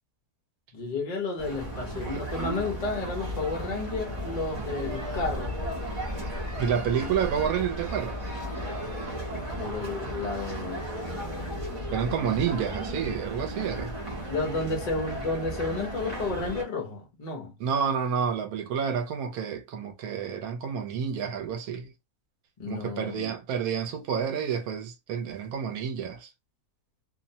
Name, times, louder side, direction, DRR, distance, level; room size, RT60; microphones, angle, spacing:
voice 1, 0.7-5.6 9.6-11.8 14.3-17.5 22.6-23.3, left 3 dB, 35° left, 0.7 m, -32 dB
sound 1, 1.4-16.6, equal, 30° right, 0.8 m, -34 dB
voice 2, 6.6-8.2 11.9-13.9 17.6-21.9 22.7-26.3, right 7 dB, 85° right, 1.1 m, -29 dB
2.7 x 2.1 x 2.7 m
omnidirectional pair, 1.5 m